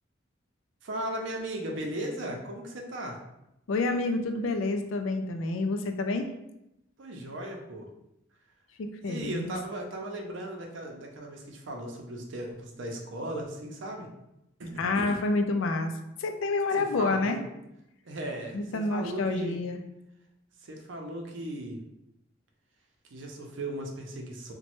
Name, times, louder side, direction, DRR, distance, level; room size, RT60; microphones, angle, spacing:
voice 1, 0.8-3.2 7.0-7.9 9.0-14.1 14.6-15.2 16.8-17.4 18.0-19.6 20.6-21.8 23.1-24.5, right 1 dB, 75° right, 1 dB, 0.5 m, -37 dB
voice 2, 3.7-6.3 8.8-9.5 14.8-15.9 16.2-17.4 18.5-19.8, left 3 dB, 90° left, 6 dB, 0.4 m, -28 dB
3.0 x 2.2 x 3.0 m, 0.86 s
head